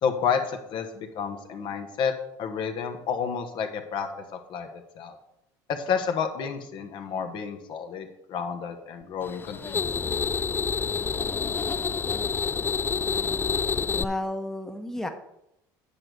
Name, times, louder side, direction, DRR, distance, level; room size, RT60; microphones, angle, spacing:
voice 1, 0.0-2.1 2.4-4.1 4.5-5.2 5.7-10.1, left 6 dB, 55° left, 5 dB, 1.3 m, -30 dB
sound 1, 9.2-14.0, left 5 dB, 20° left, 0.4 m, -28 dB
voice 2, 13.9-15.1, left 1 dB, 5° left, 5 dB, 1.1 m, -32 dB
8.6 x 4.7 x 6.8 m, 0.83 s
supercardioid pair, 85°, 10 cm